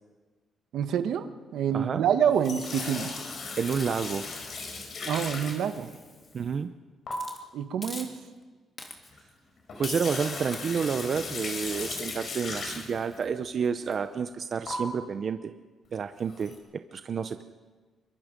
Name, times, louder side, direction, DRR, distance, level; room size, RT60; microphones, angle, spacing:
voice 1, 0.7-3.1 5.1-5.9 7.5-8.1, right 8 dB, 80° right, 9 dB, 1.3 m, -27 dB
sound 1, 2.3-6.2 7.1-7.2 9.1-9.2 9.6-13.2 13.8-13.9 14.7-14.8 16.3-16.6, left 4 dB, 55° left, 5.0 m, -37 dB
voice 2, 3.6-4.3 6.3-6.7 9.8-15.5 15.9-17.4, right 6 dB, 50° right, 9 dB, 0.8 m, -30 dB
Hiss, 3.7-6.6 7.1-7.4 7.8-8.4 8.8-9.2 9.9-10.2 10.5-11.0, left 2 dB, 30° left, 2.9 m, -47 dB
23.5 x 22.5 x 5.3 m, 1.4 s
cardioid pair, 105°, 0 cm